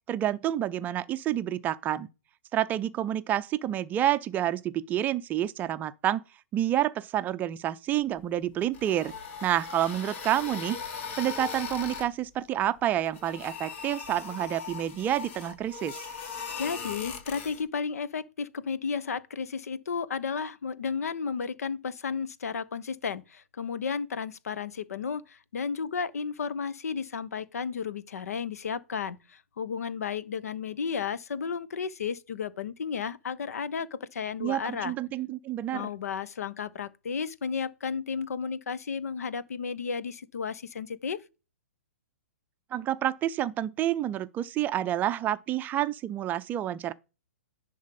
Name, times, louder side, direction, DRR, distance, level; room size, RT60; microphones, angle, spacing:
voice 1, 0.1-2.1 2.5-6.2 6.5-9.1 9.4-10.8 11.2-16.1 34.4-35.9 42.7-46.9, right 12 dB, 20° right, 0.5 m, -29 dB
sound 1, 8.6-12.1 13.1-17.6, left 6 dB, 55° left, 2.9 m, -39 dB
voice 2, 16.6-34.9 35.7-41.2, left 6 dB, 80° left, 0.9 m, -33 dB
10.5 x 3.5 x 5.3 m
hypercardioid pair, 135°, 8 cm